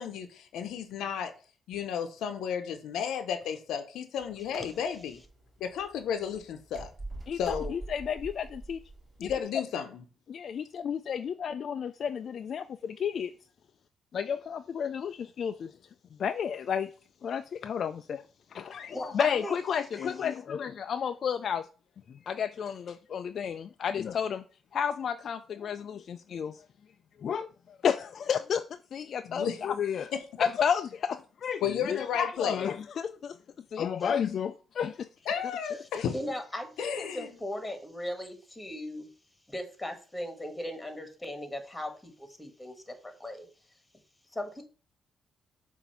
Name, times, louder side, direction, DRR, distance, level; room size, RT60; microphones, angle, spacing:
voice 1, 0.0-1.3 1.7-5.2 5.6-6.9 7.4-7.7 9.2-10.0 29.3-29.6 30.1-30.4 31.6-32.6 35.3-36.1 36.8-37.3, left 8 dB, 80° left, 0.7 m, -33 dB
opening and closing a door, 4.2-9.4, right 2 dB, 30° right, 3.2 m, -45 dB
voice 2, 7.3-8.8 9.2-9.3 10.3-13.3 14.1-15.8 16.2-16.9 17.2-21.7 22.1-24.4 24.7-26.6 27.2-30.1 30.4-33.4 33.7-35.1 36.0-36.1, left 7 dB, 55° left, 0.3 m, -32 dB
voice 3, 18.9-19.6 20.0-20.1 36.1-39.1 39.5-43.5 44.3-44.6, left 1 dB, 10° left, 1.5 m, -38 dB
7.0 x 2.6 x 5.5 m
cardioid pair, 90°, 0 cm